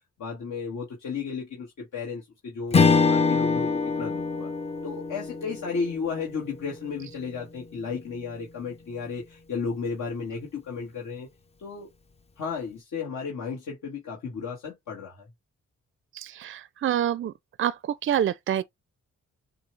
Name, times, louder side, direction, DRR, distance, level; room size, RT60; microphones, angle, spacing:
voice 1, 0.2-4.5 4.8-11.3 11.6-11.9 12.4-15.3, left 5 dB, 80° left, 1.5 m, -34 dB
Strum, 2.7-7.3, left 4 dB, 20° left, 0.4 m, -25 dB
voice 2, 16.1-17.3 17.6-18.6, right 10 dB, 45° right, 0.4 m, -27 dB
6.8 x 2.3 x 3.2 m
wide cardioid pair, 115°, 30 cm